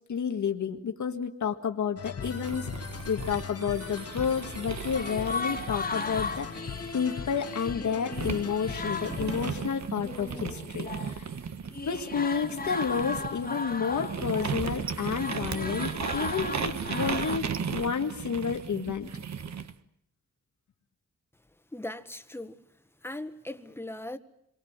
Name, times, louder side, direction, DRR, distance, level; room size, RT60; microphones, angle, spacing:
voice 1, 0.1-6.7 6.9-11.3 11.8-19.1, left 6 dB, 85° left, 1.9 m, -31 dB
sound 1, 2.0-9.9, left 6 dB, 55° left, 1.3 m, -40 dB
sound 2, 2.2-7.6 8.1-19.7, right 6 dB, 70° right, 1.3 m, -36 dB
sound 3, 4.9-11.3 11.7-17.4, left 4 dB, 30° left, 2.0 m, -37 dB
voice 2, 21.7-22.6 23.0-24.2, left 1 dB, 10° left, 1.6 m, -38 dB
27.5 x 23.5 x 8.9 m
wide cardioid pair, 105°, 29 cm